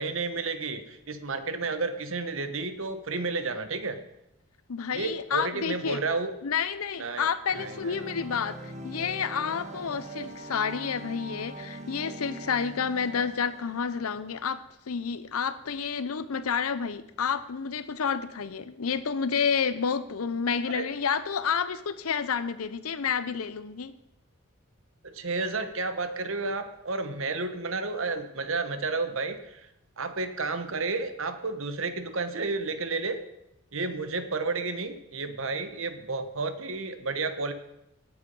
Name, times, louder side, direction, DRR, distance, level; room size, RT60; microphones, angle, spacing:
voice 1, 0.0-4.0 4.9-6.3 7.0-7.3 7.6-8.3 20.7-20.8 25.0-29.6 30.0-33.2 33.7-37.5, right 3 dB, 65° right, 10 dB, 1.2 m, -31 dB
voice 2, 4.7-6.0 6.4-14.6 14.9-23.9, left 6 dB, 85° left, 13 dB, 0.7 m, -30 dB
sound 1, 7.5-14.4, right 1 dB, 35° right, 1.2 m, -42 dB
17.5 x 7.2 x 5.4 m, 0.83 s
head